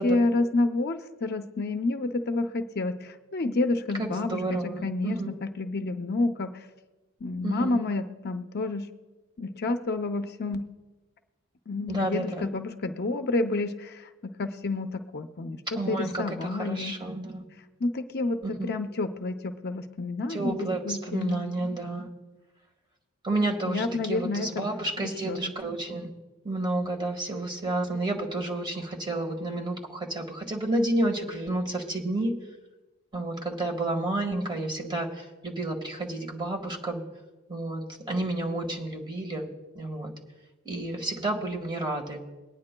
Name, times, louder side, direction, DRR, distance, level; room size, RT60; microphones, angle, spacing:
voice 1, 0.0-6.5 7.2-8.9 9.4-10.6 11.7-17.0 17.8-21.4 23.7-24.7 25.0-25.5, left 2 dB, 50° left, 6 dB, 0.6 m, -29 dB
voice 2, 4.0-5.3 7.4-7.8 11.9-12.5 15.7-17.4 18.4-18.7 20.3-22.1 23.2-26.1 26.4-32.3 33.1-37.0 37.5-39.5 39.7-40.1 40.6-42.2, right 2 dB, 20° right, 1 dB, 1.5 m, -30 dB
22.5 x 9.6 x 2.2 m, 1.2 s
head